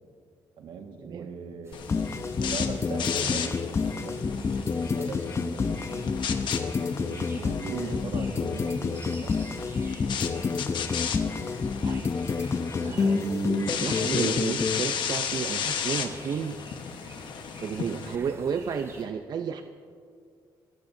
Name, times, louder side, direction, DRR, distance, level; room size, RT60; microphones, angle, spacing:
voice 1, 0.6-4.6 5.0-5.8 7.3-9.3, right 5 dB, 80° right, 4 dB, 1.8 m, -40 dB
sound 1, 1.6-19.0, right 2 dB, 35° right, 3.6 m, -50 dB
sound 2, 1.7-18.1, left 7 dB, 70° left, 1.2 m, -35 dB
sound 3, 1.9-14.8, left 4 dB, 35° left, 0.7 m, -29 dB
voice 2, 7.0-7.8 11.8-16.6 17.6-19.6, right 7 dB, 55° right, 7 dB, 0.6 m, -33 dB
26.0 x 15.0 x 2.7 m, 2.2 s
cardioid pair, 95°, 8 cm